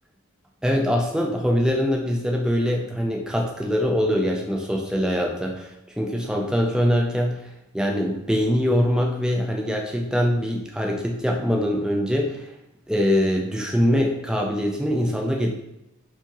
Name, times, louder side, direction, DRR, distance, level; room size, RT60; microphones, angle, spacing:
voice 1, 0.6-7.4 7.7-12.5 12.9-15.5, equal, 5° right, 0 dB, 0.4 m, -23 dB
4.5 x 2.8 x 2.9 m, 0.90 s
head